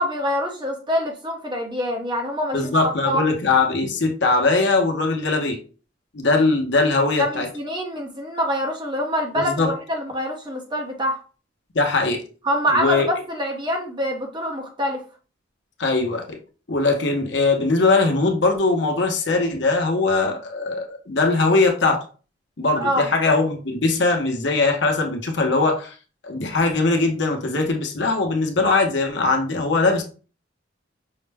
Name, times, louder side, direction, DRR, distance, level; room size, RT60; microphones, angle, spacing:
voice 1, 0.0-3.2 7.2-11.2 12.4-15.0 22.7-23.1, equal, 25° right, 1 dB, 0.9 m, -25 dB
voice 2, 2.5-5.6 6.1-7.5 9.4-9.7 11.7-12.2 12.7-13.1 15.8-16.4 16.7-22.0 22.6-25.9 26.2-30.0, left 3 dB, 65° left, 3 dB, 0.8 m, -20 dB
5.6 x 2.1 x 3.4 m, 0.37 s
head